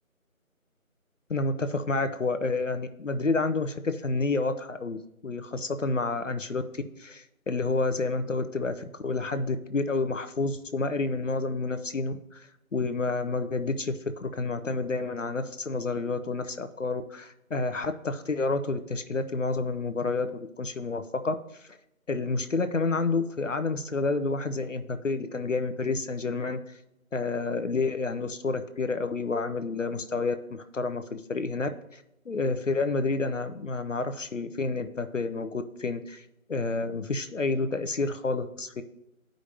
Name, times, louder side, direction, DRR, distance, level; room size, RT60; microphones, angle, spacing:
voice 1, 1.3-21.7 22.1-26.6 27.1-38.8, left 3 dB, 60° left, 9 dB, 0.5 m, -29 dB
10.5 x 5.0 x 2.7 m, 0.84 s
figure-of-eight pair, 170°, 42 cm